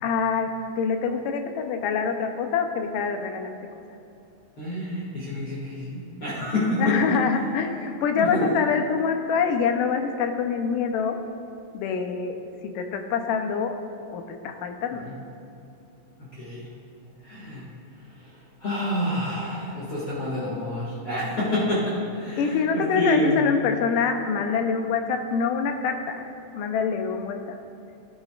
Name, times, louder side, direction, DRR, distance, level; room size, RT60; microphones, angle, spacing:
voice 1, 0.0-3.5 6.8-11.2 11.7-12.4 12.8-13.7 14.1-15.0 22.4-26.2 26.5-27.6, left 6 dB, 85° left, 5 dB, 2.4 m, -25 dB
voice 2, 4.6-7.1 8.1-8.5 15.0-15.2 16.2-16.7 17.2-17.7 18.2-23.4, left 1 dB, 45° left, -8 dB, 2.5 m, -28 dB
17.5 x 10.5 x 2.5 m, 2.7 s
omnidirectional pair, 3.8 m